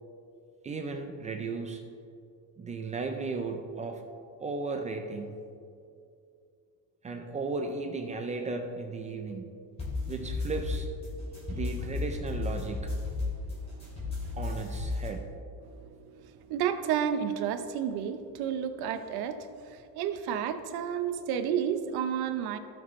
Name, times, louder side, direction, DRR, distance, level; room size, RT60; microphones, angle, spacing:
voice 1, 0.6-1.8 2.6-4.0 4.4-5.4 7.0-9.5 10.1-10.9 11.5-13.0 14.4-15.3, right 3 dB, 20° right, 4 dB, 0.3 m, -35 dB
sound 1, 9.8-15.1, left 3 dB, 15° left, 2.5 m, -34 dB
voice 2, 15.7-22.6, right 8 dB, 60° right, 9 dB, 0.8 m, -32 dB
17.0 x 6.1 x 3.1 m, 2.5 s
cardioid pair, 175°, 42 cm